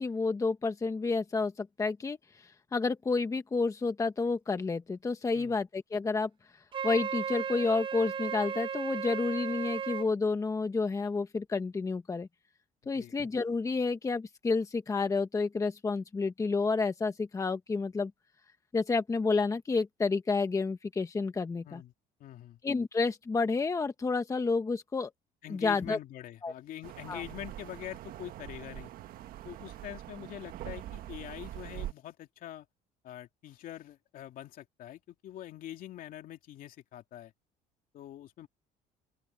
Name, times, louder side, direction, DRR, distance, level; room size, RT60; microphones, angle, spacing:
voice 1, 0.0-6.3 6.8-12.3 12.9-18.1 18.7-21.8 22.6-25.1 25.5-26.0 26.4-26.5 27.1-27.2, left 4 dB, 20° left, 1.2 m, -30 dB
Wind instrument woodwind instrument, 6.7-10.1, right 7 dB, 30° right, 0.7 m, -35 dB
voice 2, 22.2-22.6 25.4-28.9 29.4-32.7 33.0-37.3 37.9-38.5, left 12 dB, 60° left, 2.8 m, -44 dB
sound 1, 26.8-31.9, right 13 dB, 65° right, 1.5 m, -43 dB
open air
cardioid pair, 125°, 16 cm